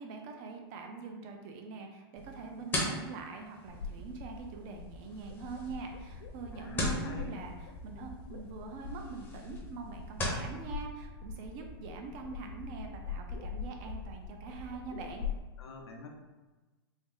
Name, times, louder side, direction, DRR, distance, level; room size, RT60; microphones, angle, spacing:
voice 1, 0.0-15.3, right 4 dB, 35° right, 3 dB, 0.5 m, -44 dB
sound 1, 2.2-10.5, left 1 dB, 15° left, 0.7 m, -40 dB
sound 2, 3.6-15.4, left 5 dB, 55° left, 0.4 m, -43 dB
voice 2, 6.5-7.4 15.6-16.1, left 3 dB, 90° left, 0 dB, 0.7 m, -45 dB
3.5 x 2.0 x 3.7 m, 1.2 s
supercardioid pair, 155°, 13 cm